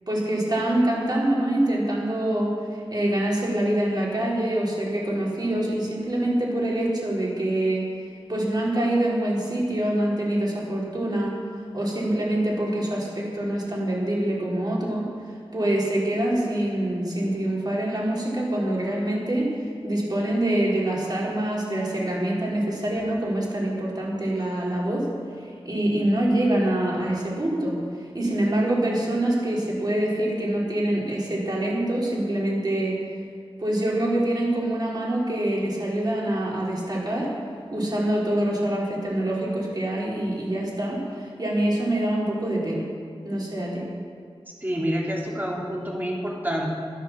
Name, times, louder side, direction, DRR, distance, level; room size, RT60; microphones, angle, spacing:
voice 1, 0.1-2.6 2.9-7.9 8.3-11.4 11.7-15.1 15.5-19.5 19.8-25.1 25.6-27.8 28.1-33.0 33.6-37.3 37.7-42.9 43.2-43.9, right 1 dB, 45° right, -4 dB, 4.4 m, -25 dB
voice 2, 44.6-46.7, equal, 20° right, -3 dB, 3.2 m, -28 dB
14.0 x 10.5 x 7.5 m, 2.3 s
wide cardioid pair, 80°, 10 cm